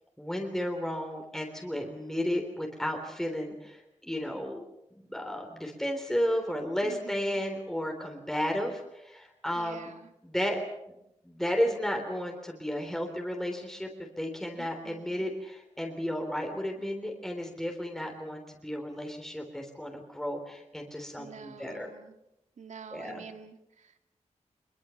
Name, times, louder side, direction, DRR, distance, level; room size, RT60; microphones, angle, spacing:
voice 1, 0.2-4.6 5.1-9.9 10.2-10.6 10.9-11.0 11.2-21.9 22.9-23.2, equal, 5° left, 2 dB, 3.5 m, -33 dB
voice 2, 6.8-7.4 9.5-10.1 14.6-15.3 21.2-22.2 22.6-24.0, right 6 dB, 75° right, 6 dB, 2.4 m, -48 dB
25.5 x 22.5 x 7.1 m, 0.85 s
wide cardioid pair, 180°, 12 cm